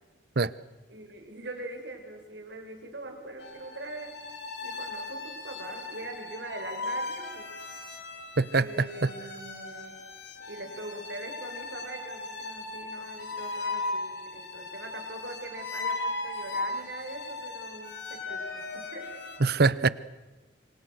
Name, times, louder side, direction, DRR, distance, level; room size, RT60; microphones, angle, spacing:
voice 1, 0.9-4.1 4.6-7.7 8.5-10.0 10.5-19.1, right 2 dB, 80° right, 4 dB, 5.0 m, -42 dB
sound 1, 3.4-19.4, left 3 dB, 75° left, 3.9 m, -37 dB
voice 2, 8.4-9.1 19.4-19.9, right 4 dB, 60° right, 18 dB, 0.8 m, -24 dB
27.0 x 25.0 x 6.5 m, 1.2 s
head